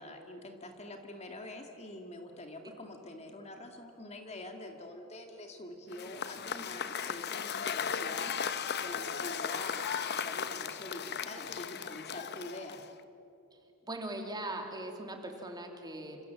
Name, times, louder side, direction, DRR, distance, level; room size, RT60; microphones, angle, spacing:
voice 1, 0.0-8.3 8.8-12.8, left 1 dB, 30° left, 4 dB, 2.1 m, -45 dB
Cheering / Applause / Crowd, 5.9-13.0, left 7 dB, 50° left, 1.0 m, -36 dB
voice 2, 13.8-16.2, right 1 dB, 20° right, 3 dB, 2.8 m, -40 dB
28.5 x 27.5 x 7.5 m, 2.9 s
head